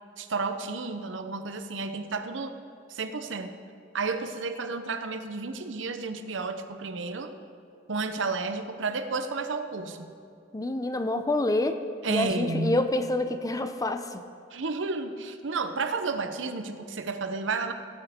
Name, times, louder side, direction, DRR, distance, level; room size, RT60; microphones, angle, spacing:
voice 1, 0.2-2.5 2.9-3.6 3.9-7.3 7.9-10.1 12.0-12.8 14.5-17.7, right 4 dB, 75° right, 8 dB, 0.7 m, -31 dB
voice 2, 10.5-11.8 12.1-14.2, left 2 dB, 20° left, 9 dB, 0.5 m, -27 dB
17.5 x 8.2 x 3.6 m, 2.5 s
head